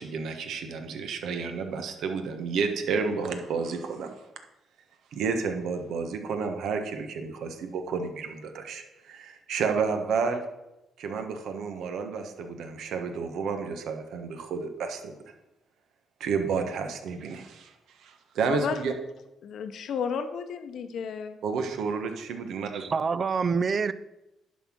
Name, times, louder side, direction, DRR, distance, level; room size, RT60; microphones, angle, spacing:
voice 1, 0.0-4.1 5.1-10.4 11.0-15.1 16.2-17.7 18.0-18.9 21.4-22.8, right 5 dB, 75° right, 1.3 m, -31 dB
voice 2, 19.4-21.4, left 6 dB, 65° left, 0.8 m, -32 dB
voice 3, 22.7-23.9, right 5 dB, 45° right, 0.5 m, -26 dB
11.0 x 4.2 x 6.2 m
cardioid pair, 90°, 0 cm